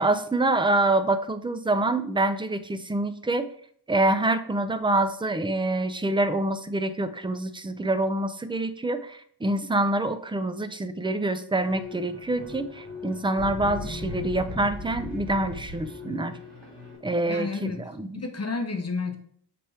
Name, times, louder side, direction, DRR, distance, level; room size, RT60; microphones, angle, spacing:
voice 1, 0.0-3.5 3.9-16.3 17.0-18.2, right 2 dB, 15° right, 10 dB, 0.3 m, -26 dB
sound 1, 11.6-17.0, left 3 dB, 75° right, 2.7 m, -38 dB
voice 2, 17.3-17.8 18.1-19.2, left 4 dB, 35° left, 5 dB, 0.8 m, -30 dB
6.7 x 3.3 x 4.2 m, 0.62 s
wide cardioid pair, 115°, 43 cm